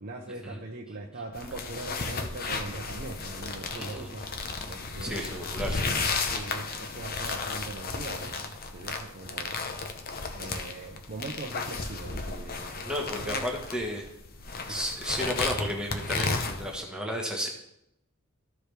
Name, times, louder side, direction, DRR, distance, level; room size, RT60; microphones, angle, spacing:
voice 1, 0.0-4.2 4.7-5.3 6.3-9.5 10.3-12.8 13.1-13.4, right 2 dB, 45° right, -1 dB, 0.7 m, -41 dB
sound 1, 1.3-16.8, left 4 dB, 45° left, 0.8 m, -34 dB
voice 2, 3.7-4.2 5.0-5.9 12.8-14.1 14.7-17.5, equal, 5° right, -1 dB, 1.2 m, -33 dB
13.5 x 4.9 x 3.4 m, 0.80 s
head